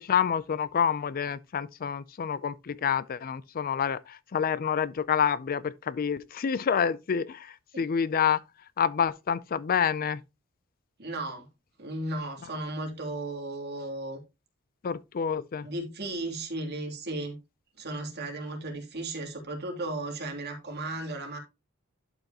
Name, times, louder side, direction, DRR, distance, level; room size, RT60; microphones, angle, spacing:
voice 1, 0.0-8.4 8.8-10.2 14.8-15.7, left 7 dB, 45° left, 0.4 m, -28 dB
voice 2, 11.0-11.5 11.8-14.2 15.6-17.4 17.8-21.4, right 2 dB, 50° right, 2.8 m, -35 dB
11.5 x 5.7 x 2.8 m
head